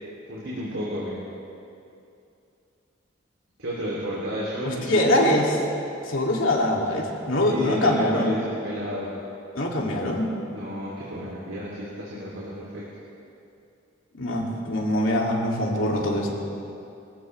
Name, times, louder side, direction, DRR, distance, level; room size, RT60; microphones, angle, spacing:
voice 1, 0.3-1.2 3.6-5.3 7.3-9.1 10.5-12.8, equal, 80° right, -7 dB, 2.9 m, -32 dB
voice 2, 4.6-5.4 6.1-8.3 9.5-10.3 14.1-16.3, left 1 dB, 80° left, -2 dB, 2.5 m, -23 dB
24.0 x 15.0 x 3.3 m, 2.7 s
head